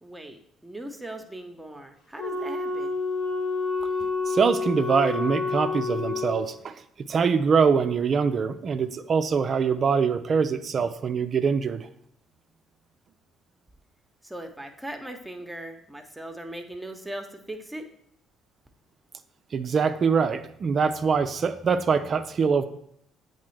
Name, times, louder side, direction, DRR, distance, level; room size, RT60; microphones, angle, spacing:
voice 1, 0.0-2.9 14.2-17.8, right 1 dB, 10° right, 4 dB, 0.9 m, -39 dB
Wind instrument woodwind instrument, 2.2-6.5, left 4 dB, 70° left, 1.7 m, -28 dB
voice 2, 4.3-11.9 19.5-22.6, right 6 dB, 45° right, 9 dB, 0.4 m, -24 dB
8.3 x 4.2 x 3.2 m, 0.71 s
hypercardioid pair, 50°, 0 cm